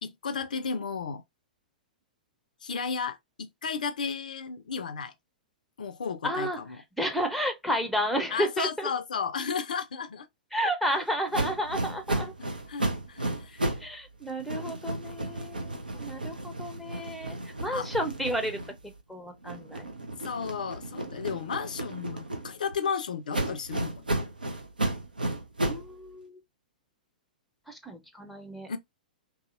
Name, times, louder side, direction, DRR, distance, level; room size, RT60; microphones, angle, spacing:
voice 1, 0.0-1.2 2.6-5.1 5.8-6.8 8.3-10.3 12.7-13.6 17.7-17.9 20.2-24.1 28.7-28.8, left 6 dB, 65° left, 0.4 m, -33 dB
voice 2, 6.2-6.6 7.0-8.9 10.5-12.3 13.6-18.6 19.1-19.9 25.6-26.4 27.7-28.7, equal, ahead, 0.6 m, -32 dB
sound 1, 11.3-13.9 14.2-19.0 19.4-22.8 23.3-25.9, right 1 dB, 80° right, 0.6 m, -33 dB
2.7 x 2.7 x 2.4 m
figure-of-eight pair, 105°, 5 cm